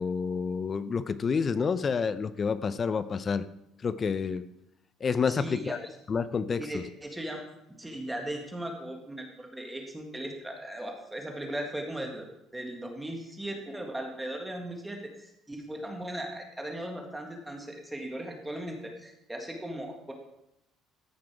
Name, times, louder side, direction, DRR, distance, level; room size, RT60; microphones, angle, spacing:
voice 1, 0.0-3.5 3.8-4.4 5.0-5.8 6.1-6.8, left 5 dB, 35° left, 14 dB, 0.5 m, -29 dB
voice 2, 5.3-5.9 6.6-12.3 12.5-20.1, right 1 dB, 10° right, 2 dB, 1.7 m, -38 dB
14.0 x 5.7 x 4.8 m, 0.83 s
cardioid pair, 115°, 0 cm